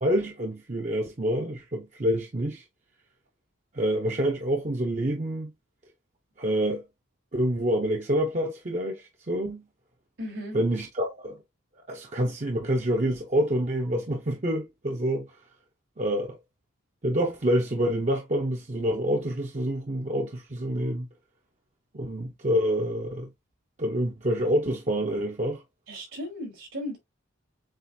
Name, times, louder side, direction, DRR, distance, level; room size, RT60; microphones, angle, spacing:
voice 1, 0.0-2.6 3.7-5.5 6.4-6.8 7.3-9.6 10.5-11.4 11.9-15.3 16.0-16.4 17.0-21.1 21.9-23.3 23.8-25.6, equal, 35° right, 0.7 m, -27 dB
voice 2, 10.2-10.6 25.9-27.0, left 1 dB, 80° right, 3.6 m, -36 dB
7.4 x 2.5 x 2.7 m
head